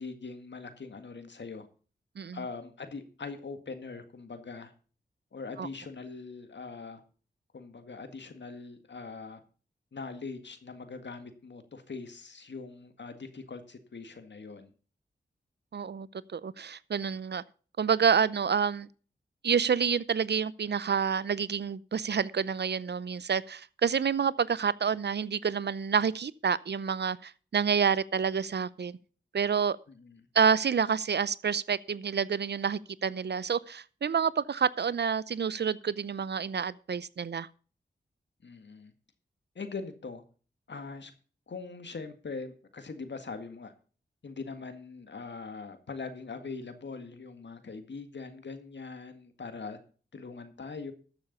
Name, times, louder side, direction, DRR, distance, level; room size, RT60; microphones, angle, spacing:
voice 1, 0.0-1.7 2.3-4.7 5.3-7.0 7.5-9.4 9.9-14.7 29.9-30.2 38.4-38.9 39.6-40.2 40.7-41.1 41.5-43.7 44.2-49.8 50.1-50.9, left 4 dB, 70° left, 1.9 m, -42 dB
voice 2, 15.7-16.1 16.3-17.4 17.8-18.9 19.4-29.0 29.3-29.8 30.3-37.5, right 6 dB, 65° right, 0.6 m, -28 dB
13.5 x 7.0 x 5.5 m
cardioid pair, 45°, 19 cm